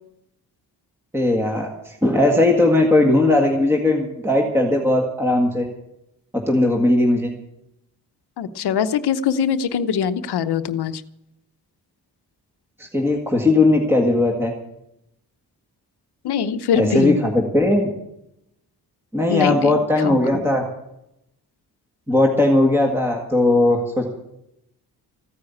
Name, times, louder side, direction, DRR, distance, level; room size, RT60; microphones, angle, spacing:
voice 1, 1.1-5.6 6.3-7.3 12.8-14.5 16.7-17.9 19.1-20.6 22.1-24.0, left 2 dB, 5° right, 1 dB, 1.8 m, -18 dB
voice 2, 8.4-11.0 16.2-17.2 19.3-19.7 20.0-20.2, left 7 dB, 85° left, 12 dB, 0.9 m, -22 dB
15.0 x 9.8 x 8.4 m, 0.82 s
wide cardioid pair, 155°, 38 cm